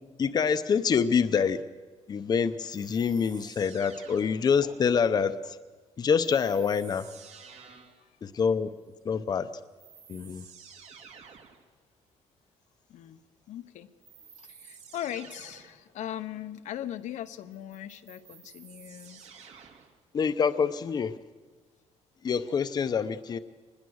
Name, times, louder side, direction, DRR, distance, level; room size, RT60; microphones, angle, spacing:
voice 1, 0.2-1.6 2.1-5.6 6.0-7.1 8.2-8.7 9.0-9.5 10.1-10.4 20.1-21.1 22.2-23.4, left 6 dB, 35° left, 10 dB, 0.7 m, -26 dB
sound 1, 2.7-4.7 6.2-8.0 9.3-9.4 9.8-11.6 14.0-15.8 17.5-20.0, right 6 dB, 65° right, 2.3 m, -51 dB
voice 2, 7.7-8.1 12.9-13.9 14.4-19.2, left 11 dB, 85° left, 9 dB, 0.9 m, -39 dB
25.0 x 20.0 x 6.4 m, 1.4 s
cardioid pair, 165°, 12 cm